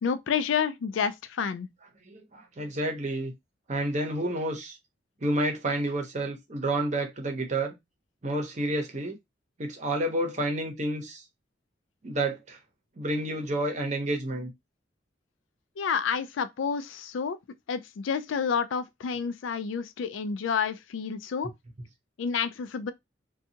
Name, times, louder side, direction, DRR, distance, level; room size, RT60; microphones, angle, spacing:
voice 1, 0.0-1.7 15.8-17.4 17.7-21.5 22.2-22.9, left 6 dB, 80° left, 0.4 m, -29 dB
voice 2, 2.1-3.3 3.7-4.8 5.2-7.7 8.2-9.1 9.6-11.2 12.0-12.6 13.0-14.5, right 1 dB, 40° right, 0.7 m, -29 dB
2.6 x 2.3 x 2.7 m
head